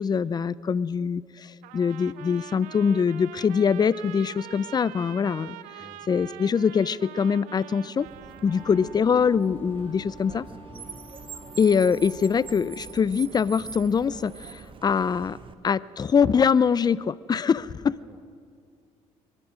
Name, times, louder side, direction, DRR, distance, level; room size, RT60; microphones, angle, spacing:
voice 1, 0.0-5.6 6.1-8.1 8.4-10.5 11.6-15.4 15.6-17.9, left 6 dB, 30° left, 19 dB, 0.4 m, -23 dB
Trumpet, 1.6-9.1, right 14 dB, 85° right, 0.5 m, -44 dB
Car, 8.0-15.5, right 5 dB, 40° right, 1.1 m, -44 dB
Wind instrument woodwind instrument, 8.4-13.1, left 1 dB, 15° left, 1.9 m, -48 dB
voice 2, 17.8-18.2, equal, 5° right, 2 dB, 1.7 m, -50 dB
24.0 x 11.0 x 5.0 m, 2.2 s
supercardioid pair, 75°, 13 cm